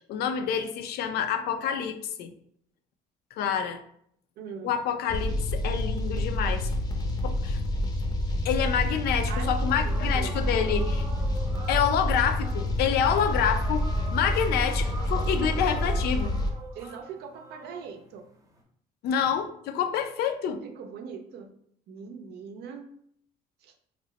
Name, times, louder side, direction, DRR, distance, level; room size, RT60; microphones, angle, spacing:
voice 1, 0.1-2.3 3.4-3.8 4.6-6.7 7.2-7.6 8.4-11.1 11.7-16.3 19.0-20.6, left 8 dB, 70° left, 7 dB, 0.4 m, -27 dB
voice 2, 4.4-4.7 9.3-10.4 16.7-18.2 20.6-21.5 21.9-22.9 23.6-23.7, right 6 dB, 75° right, 5 dB, 0.5 m, -41 dB
sound 1, 5.1-16.5, left 1 dB, 20° left, 0.5 m, -28 dB
sound 2, 9.9-18.6, right 1 dB, 20° right, 0.8 m, -43 dB
2.9 x 2.0 x 3.9 m, 0.67 s
cardioid pair, 110°, 17 cm